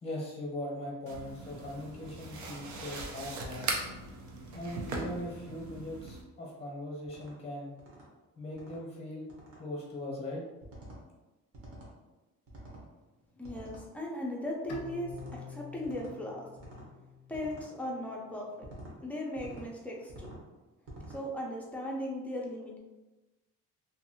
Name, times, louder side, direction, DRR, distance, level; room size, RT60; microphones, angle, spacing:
voice 1, 0.0-3.7 4.5-7.7 8.4-9.3 9.6-10.4, left 1 dB, 20° left, -3 dB, 0.8 m, -40 dB
sound 1, 1.1-6.2, right 3 dB, 70° right, 0.6 m, -39 dB
sound 2, 7.1-7.3 7.8-8.1 8.5-8.8 9.3-9.6 10.6-11.0 11.5-11.9 12.5-12.9 13.4-13.9 15.1-15.4 15.8-16.1 16.6-16.9 17.3-17.7 18.6-19.0 19.4-19.7 20.1-20.4 20.9-21.2, right 1 dB, 50° right, 1.0 m, -48 dB
voice 2, 13.4-16.5 17.3-18.7 19.0-20.3 21.1-22.8, left 1 dB, 5° left, -2 dB, 0.4 m, -38 dB
Bowed string instrument, 14.7-17.9, left 5 dB, 55° left, 0.5 m, -48 dB
2.7 x 2.5 x 2.7 m, 1.1 s
cardioid pair, 140°, 30 cm